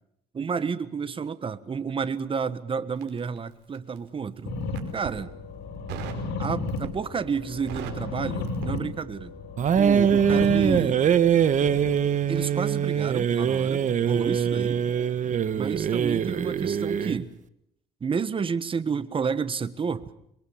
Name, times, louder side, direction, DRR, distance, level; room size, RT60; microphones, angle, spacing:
voice 1, 0.3-4.6 4.9-5.3 6.4-9.3 9.8-11.0 12.3-14.8 15.5-17.3 18.0-20.1, right 6 dB, 30° right, 14 dB, 1.5 m, -30 dB
Crackle, 2.9-4.1 4.6-5.2 5.9-6.3 6.7-7.1 7.4-9.4 9.6-9.9, right 11 dB, 90° right, 5.0 m, -39 dB
sound 1, 4.5-12.4, left 3 dB, 80° left, 5.5 m, -34 dB
sound 2, 9.6-17.2, right 8 dB, 45° right, 1.4 m, -23 dB
27.0 x 22.0 x 7.4 m, 0.76 s
cardioid pair, 110°, 17 cm